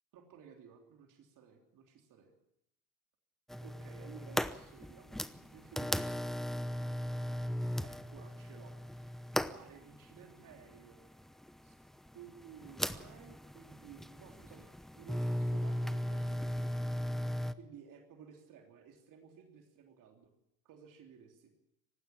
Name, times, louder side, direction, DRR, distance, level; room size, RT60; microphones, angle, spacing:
voice 1, 0.1-2.3 3.6-9.2 9.5-11.0 11.6-11.7 12.1-16.7 17.5-20.3 20.6-21.5, right 7 dB, 50° right, 3 dB, 3.3 m, -56 dB
sound 1, 3.5-17.5, equal, ahead, 0.8 m, -37 dB
19.0 x 15.5 x 8.7 m, 0.82 s
hypercardioid pair, 85°, 40 cm